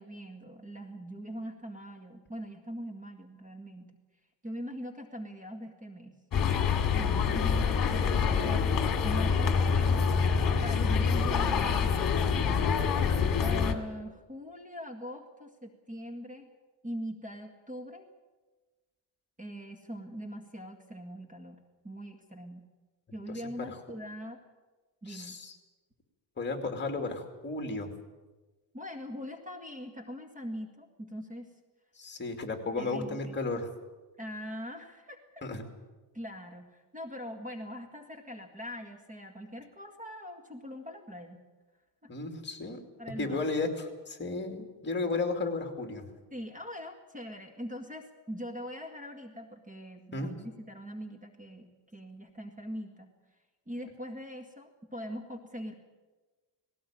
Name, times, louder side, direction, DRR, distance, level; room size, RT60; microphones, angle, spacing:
voice 1, 0.0-3.9 4.4-6.2 6.9-8.7 9.0-10.1 10.6-11.9 13.4-16.5 16.8-18.1 19.4-22.6 23.1-24.4 25.0-25.4 28.7-31.5 32.8-33.4 34.2-35.2 36.1-41.4 42.0-42.1 43.0-43.4 46.3-53.1 53.7-55.7, equal, 20° right, 5 dB, 2.0 m, -42 dB
sound 1, 6.3-13.7, left 6 dB, 50° left, 2.2 m, -26 dB
voice 2, 7.2-7.8 23.3-23.4 23.7-23.8 25.1-25.6 26.4-27.9 32.0-33.7 35.4-35.6 42.1-42.8 43.2-46.1 50.1-50.3, left 3 dB, 25° left, 5 dB, 2.6 m, -34 dB
19.0 x 18.0 x 8.9 m, 1.2 s
cardioid pair, 150°, 43 cm